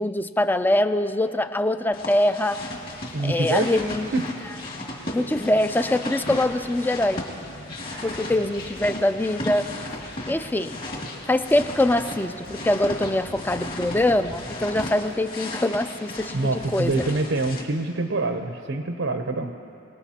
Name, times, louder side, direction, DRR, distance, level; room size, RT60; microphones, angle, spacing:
voice 1, 0.0-2.6 3.2-4.1 5.1-7.2 8.0-9.7 10.3-10.8 11.3-17.0, left 1 dB, 10° left, 11 dB, 0.4 m, -23 dB
sound 1, 1.9-17.6, left 1 dB, 45° left, 2.2 m, -35 dB
Sliding door, 2.6-15.2, equal, 70° left, 1.8 m, -45 dB
voice 2, 3.1-3.8 4.1-4.2 7.8-8.2 16.3-19.5, right 2 dB, 75° right, 5 dB, 0.8 m, -26 dB
27.0 x 19.0 x 2.9 m, 2.7 s
head